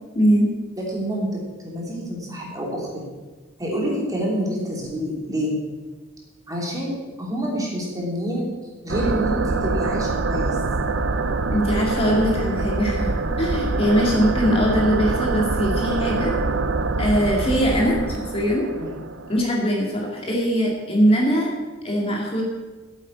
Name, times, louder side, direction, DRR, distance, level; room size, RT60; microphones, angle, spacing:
voice 1, 0.1-0.5 11.5-16.3 17.0-18.7 19.3-21.5 21.8-22.4, equal, 30° left, -2 dB, 2.2 m, -21 dB
voice 2, 0.8-3.0 3.6-5.5 6.5-8.5 8.8-10.6 18.8-18.9, equal, 15° right, -3 dB, 3.1 m, -27 dB
sound 1, 8.9-19.5, right 3 dB, 65° right, 0.7 m, -25 dB
9.1 x 8.2 x 8.6 m, 1.3 s
head